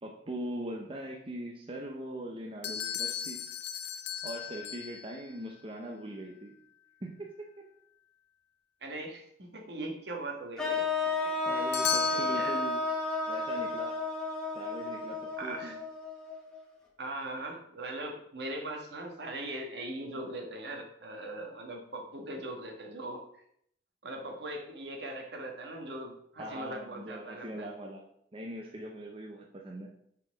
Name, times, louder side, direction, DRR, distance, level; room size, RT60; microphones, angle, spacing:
voice 1, 0.0-3.4 4.2-6.6 7.0-7.7 11.5-12.8 13.3-14.0 14.5-15.8 26.4-28.0 28.3-29.9, right 1 dB, 30° right, 0 dB, 0.7 m, -41 dB
sound 1, 2.6-5.3 11.7-14.5, left 8 dB, 60° left, 0.7 m, -37 dB
voice 2, 8.8-11.7 12.0-12.6 15.4-15.8 17.0-23.2 24.0-27.7, right 1 dB, 65° right, 2 dB, 1.4 m, -40 dB
sound 2, 10.6-16.6, left 3 dB, 5° left, 1.1 m, -32 dB
5.9 x 4.5 x 5.1 m, 0.70 s
head